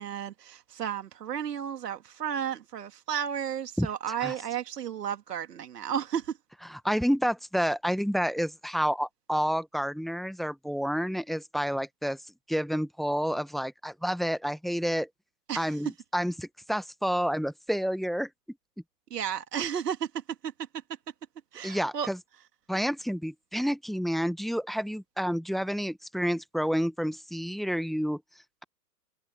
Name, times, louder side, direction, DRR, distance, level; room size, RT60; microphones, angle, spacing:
voice 1, 0.0-6.4 15.5-15.7 19.1-20.1 20.4-20.5 21.5-22.1, right 8 dB, 70° right, 2.4 m, -33 dB
voice 2, 3.8-4.3 6.6-12.2 12.5-15.1 15.5-18.3 21.6-22.2 22.7-28.2, equal, ahead, 1.2 m, -29 dB
hypercardioid pair, 115°, 49 cm